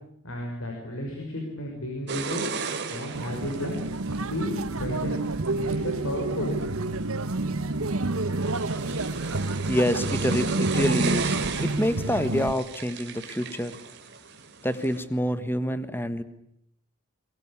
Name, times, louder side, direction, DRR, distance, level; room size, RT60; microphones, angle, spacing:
voice 1, 0.2-2.4 2.8-3.8 4.2-5.2 5.5-6.6, left 1 dB, 75° left, 1 dB, 6.0 m, -33 dB
sound 1, 2.1-15.0, right 4 dB, 55° right, 3.3 m, -36 dB
sound 2, 3.1-12.5, right 2 dB, 75° right, 1.4 m, -29 dB
voice 2, 9.7-13.8 14.6-16.2, equal, 10° left, 12 dB, 1.5 m, -27 dB
23.0 x 22.0 x 9.9 m, 0.73 s
head